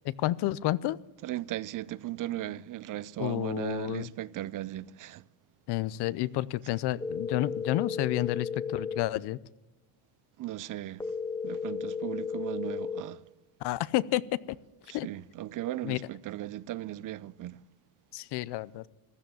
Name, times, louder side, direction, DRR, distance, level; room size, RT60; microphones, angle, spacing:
voice 1, 0.2-1.0 3.2-4.1 5.7-9.4 13.6-14.2 14.9-15.1 15.8-16.0 18.1-18.9, left 16 dB, 65° left, 0.7 m, -30 dB
voice 2, 1.2-5.2 10.4-11.1 11.4-13.2 14.9-17.6, right 14 dB, 45° right, 0.5 m, -37 dB
sound 1, 7.0-9.0 11.0-13.0, left 5 dB, 10° left, 0.8 m, -34 dB
15.5 x 12.0 x 7.0 m
cardioid pair, 125°, 44 cm